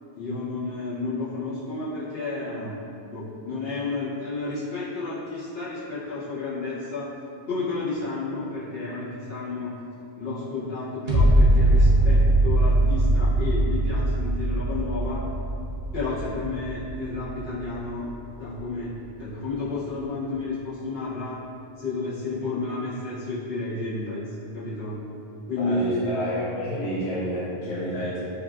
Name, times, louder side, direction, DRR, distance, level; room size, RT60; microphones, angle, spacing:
voice 1, 0.1-2.8 3.1-7.2 7.5-9.7 10.2-15.2 15.9-18.1 18.4-21.4 21.8-24.2 24.5-25.0 25.5-26.1, left 3 dB, 70° left, -12 dB, 1.2 m, -31 dB
sound 1, 11.1-18.1 18.6-18.7, right 1 dB, 45° right, 0.6 m, -21 dB
voice 2, 25.6-28.2, equal, 45° left, -10 dB, 0.7 m, -30 dB
3.2 x 2.4 x 2.4 m, 2.7 s
omnidirectional pair, 1.1 m